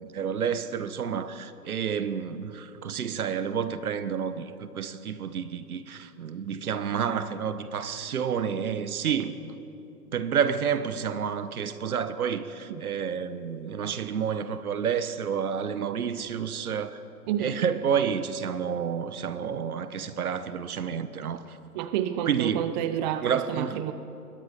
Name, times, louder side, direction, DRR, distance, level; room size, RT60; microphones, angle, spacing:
voice 1, 0.1-9.6 10.1-17.0 17.4-21.6 22.2-22.7 23.2-23.8, right 7 dB, 65° right, 1.5 m, -29 dB
voice 2, 17.3-17.8 21.7-23.9, right 10 dB, 30° right, 0.8 m, -30 dB
25.0 x 21.5 x 5.4 m
figure-of-eight pair, 120°, 46 cm